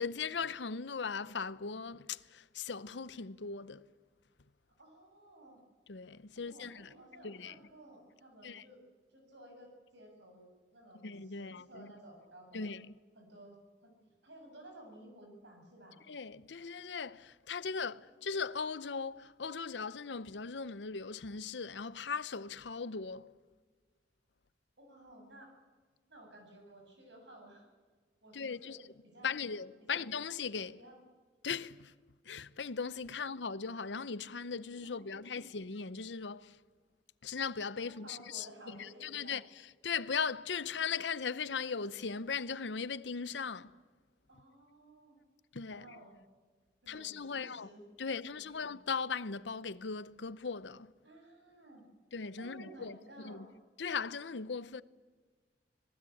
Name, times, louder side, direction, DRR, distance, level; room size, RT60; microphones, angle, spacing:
voice 1, 0.0-3.8 5.9-6.9 7.2-7.5 8.4-8.6 11.0-11.9 12.5-12.9 16.1-23.3 28.3-28.8 29.2-30.7 31.4-31.9 32.3-36.6 37.2-39.4 39.8-43.7 45.5-45.8 46.9-47.7 48.0-50.9 52.1-53.5 53.8-54.8, left 5 dB, 90° left, 0.8 m, -38 dB
voice 2, 4.8-5.6 6.4-8.8 9.1-12.7 13.1-16.0 17.5-18.2 24.8-25.5 26.1-27.7 28.2-28.8 29.0-29.3 29.8-30.1 30.7-31.0 33.2-33.3 34.8-35.6 37.8-39.4 44.3-45.2 45.7-46.2 46.8-47.8 48.2-48.7 51.0-51.8 52.4-53.5, right 1 dB, 80° right, 7.5 m, -55 dB
26.0 x 19.0 x 8.6 m
head